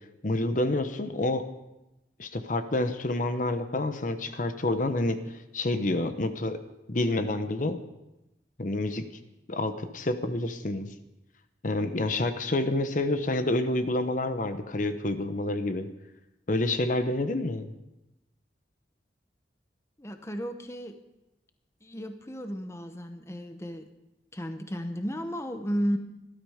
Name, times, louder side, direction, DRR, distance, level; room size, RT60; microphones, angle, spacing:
voice 1, 0.2-1.4 2.2-5.2 5.5-6.6 6.9-7.8 8.6-9.1 9.5-10.9 11.6-15.9 16.5-17.7, left 2 dB, 45° left, 9 dB, 0.9 m, -28 dB
voice 2, 20.0-21.0 21.8-23.9 24.3-26.0, equal, 15° left, 7 dB, 0.9 m, -33 dB
18.5 x 12.5 x 5.0 m, 0.95 s
head